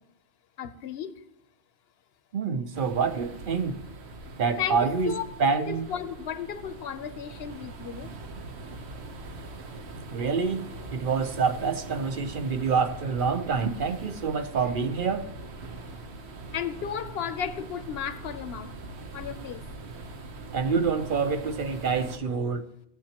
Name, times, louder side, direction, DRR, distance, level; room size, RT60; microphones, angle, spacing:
voice 1, 0.6-1.1 4.6-5.2 5.7-8.1 16.5-18.7 19.1-19.6, left 8 dB, 75° left, 0.9 m, -34 dB
voice 2, 2.3-3.8 4.4-5.1 5.4-5.9 10.1-15.3 20.5-22.6, right 5 dB, 60° right, 0.8 m, -27 dB
sound 1, 2.7-22.2, right 2 dB, 85° right, 1.2 m, -42 dB
18.0 x 7.8 x 2.9 m
omnidirectional pair, 1.1 m